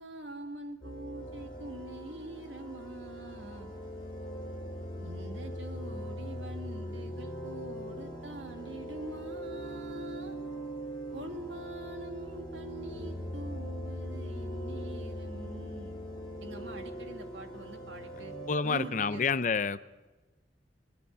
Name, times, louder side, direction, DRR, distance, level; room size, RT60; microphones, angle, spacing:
voice 1, 0.0-3.7 5.0-10.4 11.1-16.0 16.4-18.3 18.6-19.5, right 1 dB, 90° right, 5 dB, 2.3 m, -44 dB
sound 1, 0.8-19.3, equal, 25° left, 7.2 m, -41 dB
voice 2, 18.5-19.9, left 5 dB, 45° left, 15 dB, 0.6 m, -29 dB
21.0 x 14.5 x 9.5 m, 1.2 s
head